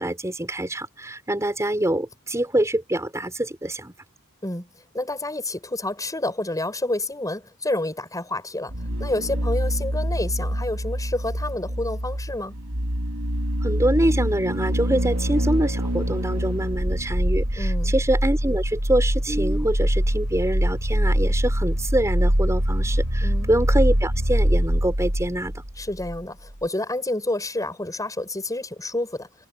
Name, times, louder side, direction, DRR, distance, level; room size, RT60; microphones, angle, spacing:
voice 1, 0.0-3.9 13.6-25.6, right 1 dB, 15° right, 4.5 m, -25 dB
voice 2, 4.9-8.7 9.0-12.6 17.6-17.9 23.2-23.5 25.8-29.3, left 2 dB, 15° left, 7.6 m, -29 dB
sound 1, 8.7-26.2 26.5-26.6, equal, 85° right, 4.0 m, -24 dB
head